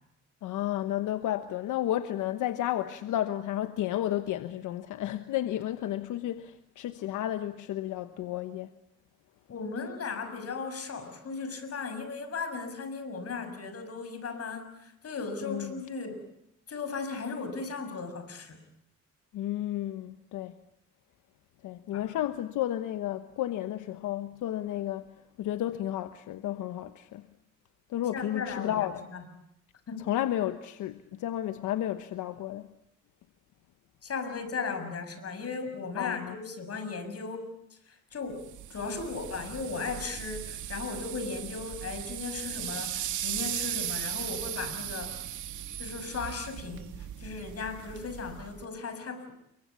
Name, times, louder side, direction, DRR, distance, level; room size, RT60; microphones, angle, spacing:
voice 1, 0.4-8.7 15.4-15.7 19.3-20.6 21.6-27.3 27.9-29.0 30.0-32.7 36.0-36.4, left 12 dB, 85° left, 1.2 m, -32 dB
voice 2, 9.5-16.2 16.7-18.6 21.9-22.0 28.1-29.2 29.9-30.1 34.0-37.5 38.1-45.1 45.8-46.9 47.2-49.3, left 4 dB, 55° left, 6.7 m, -36 dB
sound 1, 38.4-48.6, right 11 dB, 75° right, 2.6 m, -37 dB
29.5 x 23.5 x 8.4 m
cardioid pair, 90°, 30 cm